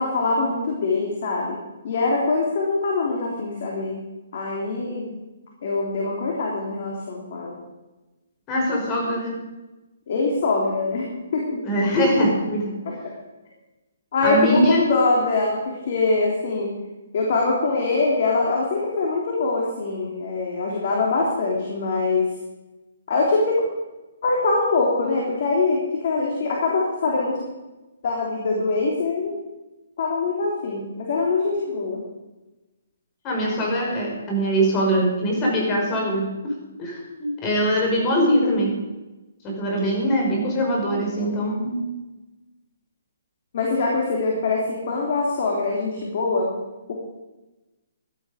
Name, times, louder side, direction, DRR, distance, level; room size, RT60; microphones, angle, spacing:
voice 1, 0.0-1.6 1.8-4.0 4.3-5.1 5.6-7.6 10.1-11.6 12.8-13.1 14.1-16.7 17.1-22.3 23.1-23.6 24.2-27.4 28.0-29.4 30.0-32.0 38.2-38.5 40.8-41.4 43.5-46.5 46.9-47.0, left 3 dB, 55° left, -2 dB, 3.5 m, -23 dB
voice 2, 8.5-9.4 11.6-12.8 14.2-14.8 33.2-36.5 36.8-38.8 39.4-41.8, equal, 25° left, -1 dB, 5.6 m, -22 dB
16.0 x 11.5 x 5.2 m, 1.1 s
hypercardioid pair, 145°, 0 cm